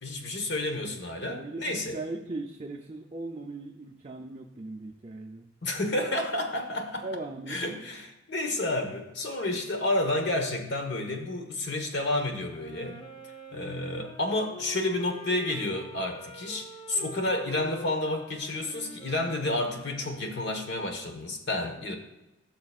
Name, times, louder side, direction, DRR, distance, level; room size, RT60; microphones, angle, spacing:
voice 1, 0.0-2.0 5.6-7.0 7.5-13.0 13.5-21.9, left 2 dB, 60° left, 4 dB, 1.3 m, -30 dB
voice 2, 1.3-5.5 7.0-7.6, right 2 dB, 30° right, 1 dB, 0.6 m, -38 dB
Wind instrument woodwind instrument, 12.5-20.8, left 1 dB, 25° left, 0.7 m, -46 dB
16.5 x 6.3 x 2.4 m, 0.99 s
head